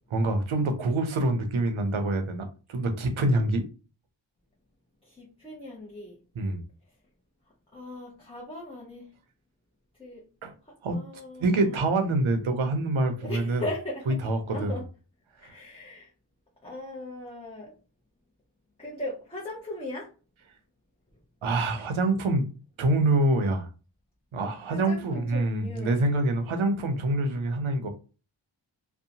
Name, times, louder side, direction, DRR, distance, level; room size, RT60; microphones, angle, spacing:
voice 1, 0.1-3.6 6.4-6.6 10.4-10.5 10.8-11.0 11.4-13.6 14.1-14.8 15.4-15.5 21.4-22.5 22.8-23.7 24.3-27.9, right 2 dB, 85° right, 6 dB, 0.7 m, -26 dB
voice 2, 5.0-6.2 7.7-9.1 10.0-10.2 10.9-11.8 13.2-14.2 14.5-14.8 15.4-16.1 16.6-17.7 18.8-20.1 24.7-26.0, left 1 dB, 10° left, -4 dB, 0.7 m, -38 dB
2.6 x 2.1 x 2.7 m, 0.34 s
wide cardioid pair, 70°, 47 cm